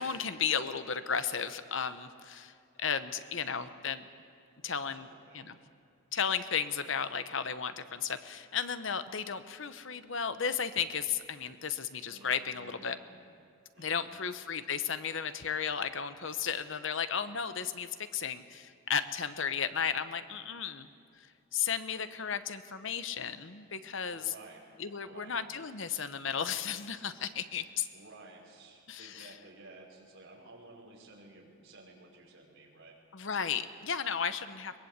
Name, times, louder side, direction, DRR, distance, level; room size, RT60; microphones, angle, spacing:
voice 1, 0.0-2.5 2.8-4.0 4.6-5.1 5.3-5.6 6.1-13.0 13.8-20.9 21.5-24.2 24.8-27.9 28.9-29.3 33.1-34.7, left 7 dB, 60° left, 11 dB, 1.0 m, -34 dB
voice 2, 4.6-5.5 6.8-6.9 12.1-13.2 13.7-14.2 24.1-24.7 25.0-25.4 27.5-32.9, right 2 dB, 60° right, -1 dB, 5.5 m, -54 dB
22.5 x 21.0 x 8.2 m, 2.5 s
head